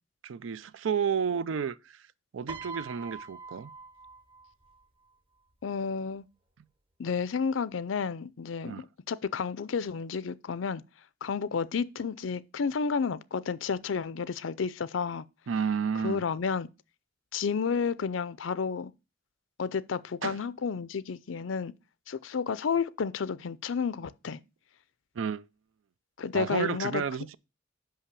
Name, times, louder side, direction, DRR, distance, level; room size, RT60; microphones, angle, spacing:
voice 1, 0.2-2.0 2.3-3.7 8.6-8.8 15.5-16.2 20.2-20.4 25.2-25.5 26.3-27.3, right 7 dB, 90° right, 0.4 m, -31 dB
Piano, 2.5-4.8 5.9-6.1, right 4 dB, 30° right, 0.9 m, -44 dB
voice 2, 5.6-6.2 7.0-10.8 11.2-15.2 16.0-16.7 17.3-18.9 19.6-21.7 22.1-24.4 26.2-27.0, left 5 dB, 85° left, 0.5 m, -31 dB
5.6 x 5.6 x 6.7 m
head